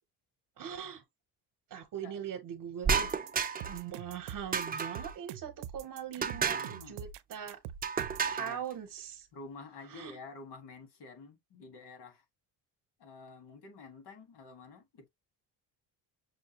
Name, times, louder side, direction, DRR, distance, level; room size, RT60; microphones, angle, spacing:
voice 1, 0.6-1.0 1.7-3.1 3.7-7.6 8.3-9.3 9.9-10.2, right 9 dB, 50° right, 0.8 m, -41 dB
sound 1, 2.8-3.8 4.5-5.1 6.2-6.8 7.8-8.6, right 6 dB, 20° right, 0.5 m, -32 dB
sound 2, 2.9-8.3, right 9 dB, 80° right, 0.6 m, -44 dB
voice 2, 6.2-7.0 8.4-8.6 9.3-12.2 13.0-15.1, left 3 dB, 70° left, 1.8 m, -50 dB
6.3 x 2.2 x 2.9 m
cardioid pair, 130°, 42 cm